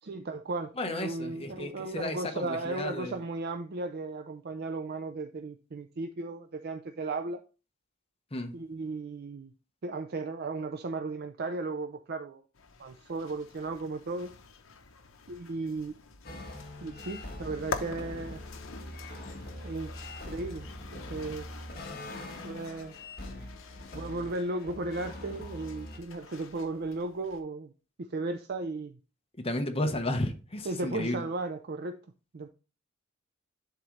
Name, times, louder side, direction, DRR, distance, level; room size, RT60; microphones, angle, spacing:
voice 1, 0.0-7.4 8.5-9.5 9.8-12.4 12.8-14.3 15.3-15.9 16.8-18.4 19.6-19.9 20.2-21.5 22.4-23.0 23.9-27.7 28.0-29.0 30.6-32.0 32.3-32.5, right 3 dB, 50° right, 0.5 m, -35 dB
voice 2, 0.8-3.2 8.3-8.6 29.4-31.3, left 1 dB, 30° left, 1.0 m, -33 dB
sound 1, 12.5-27.4, left 4 dB, 75° left, 0.9 m, -46 dB
sound 2, 16.2-26.0, left 1 dB, 50° left, 1.5 m, -43 dB
10.5 x 3.9 x 3.2 m
head